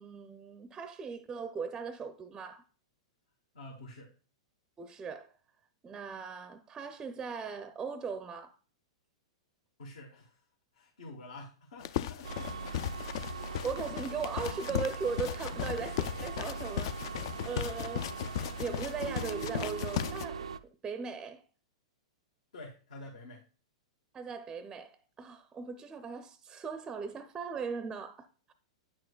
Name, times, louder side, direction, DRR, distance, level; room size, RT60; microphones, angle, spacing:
voice 1, 0.0-2.6 4.8-5.3 5.8-8.6 13.3-16.9 17.4-18.3 18.6-20.5 20.8-21.4 24.1-28.5, right 5 dB, 20° right, 0.4 m, -39 dB
voice 2, 3.5-4.1 9.8-10.4 10.7-13.1 15.6-15.9 17.1-17.2 19.6-19.8 22.5-23.4, left 2 dB, 75° left, 1.2 m, -49 dB
sound 1, 11.8-20.3, left 10 dB, 55° left, 0.3 m, -37 dB
sound 2, 12.2-20.6, right 5 dB, 80° right, 0.3 m, -41 dB
8.7 x 6.2 x 2.3 m
hypercardioid pair, 105°, 3 cm